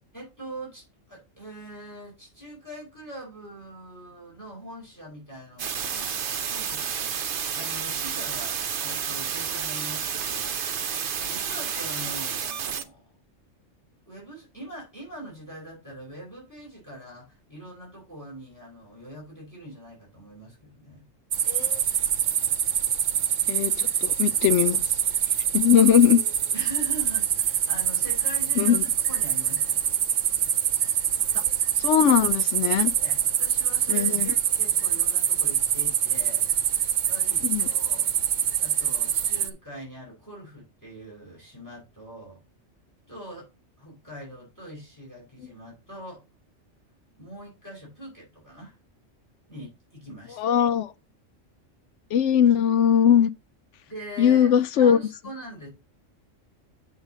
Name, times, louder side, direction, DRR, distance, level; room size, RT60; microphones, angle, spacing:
voice 1, 0.1-10.6 11.2-13.0 14.1-21.1 26.5-29.8 33.0-36.5 37.1-38.1 38.6-42.4 43.1-43.5 43.8-46.2 47.2-48.8 49.5-50.4 53.9-55.7, right 1 dB, 15° left, 4.4 m, -42 dB
sound 1, 5.6-12.8, right 7 dB, 50° right, 0.8 m, -30 dB
sound 2, 21.3-39.5, right 9 dB, 70° right, 1.1 m, -25 dB
voice 2, 21.5-21.8 23.5-24.8 25.5-26.2 28.6-28.8 31.8-32.9 33.9-34.3 37.4-37.7 50.4-50.9 52.1-53.3 54.2-55.0, left 9 dB, 70° left, 0.9 m, -20 dB
8.0 x 4.1 x 5.1 m
omnidirectional pair, 1.3 m